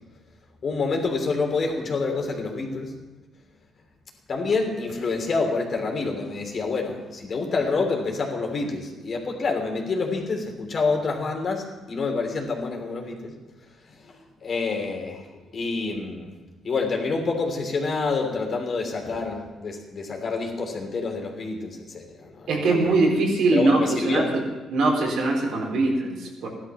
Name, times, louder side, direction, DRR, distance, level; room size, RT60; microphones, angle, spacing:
voice 1, 0.6-2.9 4.3-13.3 13.9-14.1 14.4-15.3 15.5-16.3 16.6-23.0 23.5-24.3, left 4 dB, 50° left, 2 dB, 3.2 m, -27 dB
voice 2, 22.5-24.4 24.7-26.5, right 2 dB, 75° right, -1 dB, 4.1 m, -22 dB
14.5 x 12.0 x 6.1 m, 1.2 s
cardioid pair, 90°, 0 cm